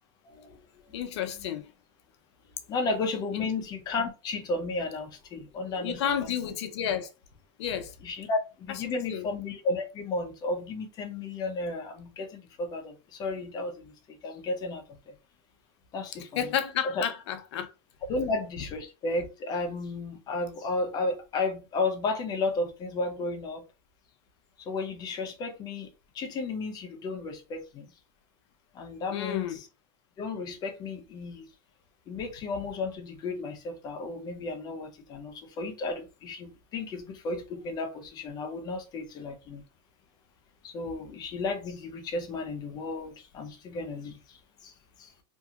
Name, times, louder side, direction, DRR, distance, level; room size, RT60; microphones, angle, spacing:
voice 1, 0.2-0.6 0.9-1.5 2.7-6.0 8.0-15.1 15.9-16.5 17.0-17.1 18.1-23.6 24.6-27.9 28.7-29.7 30.2-31.5 32.1-39.6 40.6-44.7 45.0-45.1, left 3 dB, 30° left, 0.6 m, -33 dB
voice 2, 0.9-1.7 3.3-3.5 5.7-7.1 7.6-7.9 8.9-9.3 16.4-17.7 29.1-29.6, left 9 dB, 80° left, 0.6 m, -31 dB
2.8 x 2.6 x 2.4 m
supercardioid pair, 150°, 14 cm